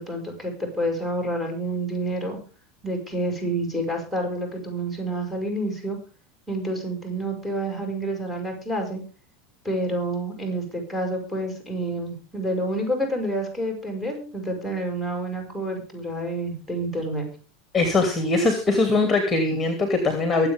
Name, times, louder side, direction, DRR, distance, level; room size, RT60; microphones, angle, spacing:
voice 1, 0.0-2.4 2.8-6.0 6.5-9.0 9.6-17.3, right 1 dB, 5° right, 2 dB, 6.6 m, -28 dB
voice 2, 17.7-20.5, left 3 dB, 15° left, 7 dB, 2.8 m, -21 dB
23.0 x 8.2 x 3.7 m, 0.35 s
figure-of-eight pair, 80°, 0 cm